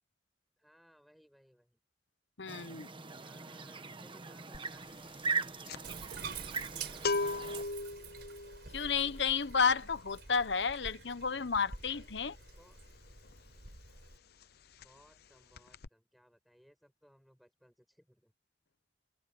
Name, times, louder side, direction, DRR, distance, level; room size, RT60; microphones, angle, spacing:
voice 1, 0.6-1.8 3.2-8.3 12.5-12.8 14.7-18.3, equal, ahead, 7.7 m, -65 dB
voice 2, 2.4-2.9 8.7-12.4, left 5 dB, 85° left, 1.2 m, -31 dB
sound 1, 2.5-7.6, right 4 dB, 30° right, 1.3 m, -40 dB
sound 2, 4.5-4.8 5.1-13.7 13.9-14.2 14.4-15.3 15.5-15.9, left 3 dB, 60° left, 0.7 m, -39 dB
Bathtub (filling or washing), 5.8-14.2, right 5 dB, 70° right, 4.8 m, -48 dB
head